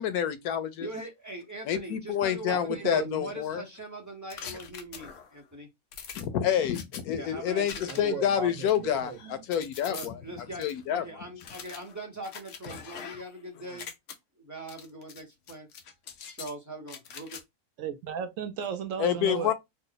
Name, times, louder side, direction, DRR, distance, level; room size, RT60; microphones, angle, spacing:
voice 1, 0.0-0.9 1.7-3.6 6.1-10.2 10.6-11.0 19.0-19.5, left 9 dB, 90° left, 1.1 m, -28 dB
voice 2, 0.8-5.7 7.2-8.3 9.9-10.6 10.9-13.9 14.4-15.7 16.4-17.4, right 2 dB, 15° right, 0.6 m, -42 dB
voice 3, 2.5-3.2 7.9-9.4 17.8-19.5, right 7 dB, 70° right, 0.9 m, -35 dB
sound 1, 4.3-5.4 5.9-7.0 7.7-8.2 8.6-10.1 10.6-10.7 11.4-13.4 13.7-14.1 14.7-15.2 15.5-16.5 16.9-17.4, left 7 dB, 65° left, 0.9 m, -43 dB
3.1 x 2.1 x 3.8 m
omnidirectional pair, 1.5 m